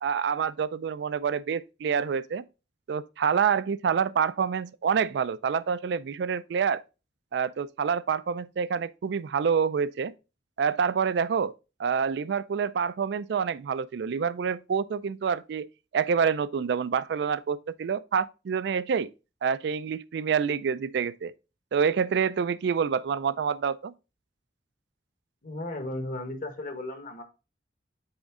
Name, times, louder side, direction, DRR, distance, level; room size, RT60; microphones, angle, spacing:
voice 1, 0.0-2.4 2.9-6.8 7.3-10.1 10.6-11.5 11.8-15.7 15.9-19.1 19.4-21.3 21.7-23.9, right 6 dB, 70° right, 0.4 m, -27 dB
voice 2, 25.4-27.2, left 1 dB, 50° left, 1.4 m, -35 dB
7.9 x 3.5 x 3.6 m
head